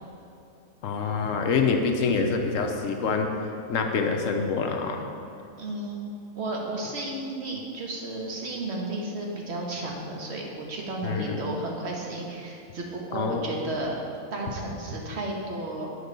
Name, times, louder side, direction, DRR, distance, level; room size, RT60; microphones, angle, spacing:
voice 1, 0.8-3.3 3.7-5.1 11.0-11.4 13.1-13.5, left 5 dB, 70° left, 4 dB, 1.0 m, -26 dB
voice 2, 5.6-6.1 6.3-13.9 14.3-15.9, right 2 dB, 50° right, -1 dB, 1.3 m, -33 dB
8.1 x 5.1 x 5.2 m, 2.6 s
omnidirectional pair, 1.5 m